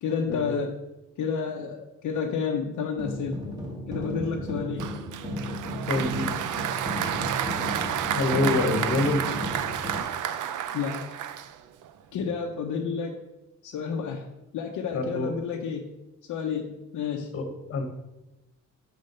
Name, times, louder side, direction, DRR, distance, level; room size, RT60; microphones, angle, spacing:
voice 1, 0.0-0.8 1.2-3.4 3.9-4.9 10.7-11.2 12.1-13.2 13.6-14.3 14.5-16.0 16.3-17.4, left 6 dB, 70° left, 2 dB, 0.8 m, -30 dB
sound 1, 3.0-10.0, equal, 10° right, 2.0 m, -34 dB
Applause, 4.8-11.9, right 10 dB, 75° right, 0.6 m, -31 dB
voice 2, 5.9-6.4 8.1-9.2 14.9-15.3 17.3-17.8, left 3 dB, 45° left, 6 dB, 1.3 m, -26 dB
6.6 x 6.3 x 5.6 m, 0.96 s
cardioid pair, 140°, 31 cm